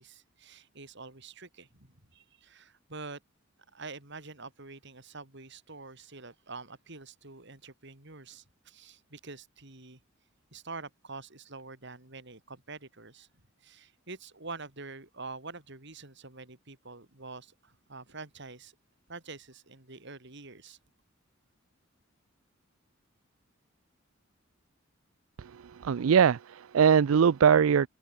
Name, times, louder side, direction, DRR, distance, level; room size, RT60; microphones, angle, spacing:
voice 1, 0.0-3.2 3.7-10.0 10.5-13.3 13.6-18.7 19.1-20.8, right 3 dB, 60° right, 4.1 m, -46 dB
voice 2, 25.4-27.9, right 7 dB, 90° right, 0.4 m, -22 dB
head